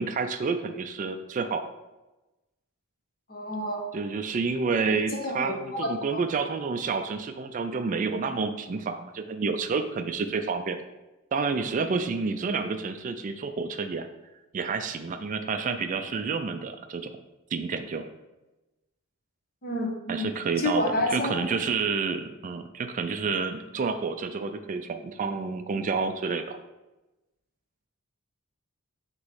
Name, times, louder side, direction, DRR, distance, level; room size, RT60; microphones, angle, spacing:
voice 1, 0.0-1.6 3.9-10.8 11.3-14.1 14.5-17.2 17.5-18.0 20.1-26.6, right 4 dB, 35° right, 8 dB, 0.3 m, -29 dB
voice 2, 3.3-3.8 4.9-6.2 19.6-20.3 20.6-21.3, left 1 dB, 45° left, 1 dB, 1.1 m, -29 dB
6.3 x 3.0 x 5.5 m, 1.0 s
head